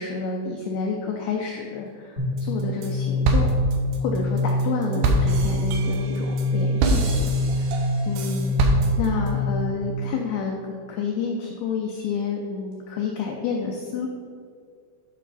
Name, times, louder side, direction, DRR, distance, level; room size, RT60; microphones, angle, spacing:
voice 1, 0.0-3.5 4.0-14.1, left 5 dB, 85° left, 1 dB, 2.2 m, -29 dB
sound 1, 2.2-9.7, left 1 dB, 50° right, 0.7 m, -25 dB
sound 2, 2.4-2.9 3.2-9.3, right 2 dB, 85° right, 2.1 m, -25 dB
9.6 x 5.0 x 4.1 m, 2.2 s
omnidirectional pair, 5.2 m